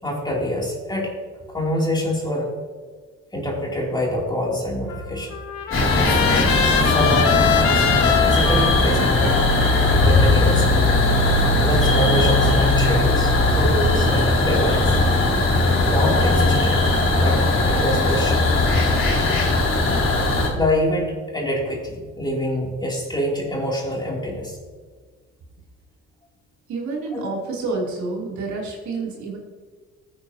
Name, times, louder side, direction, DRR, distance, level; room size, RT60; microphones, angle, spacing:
voice 1, 0.0-1.2 1.5-2.5 3.3-5.3 6.8-7.9 8.2-9.5 10.0-10.9 11.6-15.0 15.9-16.8 17.1-18.5 20.5-24.6 27.1-27.3, equal, 15° left, -3 dB, 3.2 m, -25 dB
Trumpet, 4.9-11.1, left 8 dB, 75° left, 1.3 m, -24 dB
sound 1, 5.7-20.5, left 2 dB, 40° left, 3.2 m, -18 dB
voice 2, 26.7-29.4, right 3 dB, 70° right, -3 dB, 3.3 m, -28 dB
15.0 x 9.0 x 2.9 m, 1.5 s
cardioid pair, 90°, 30 cm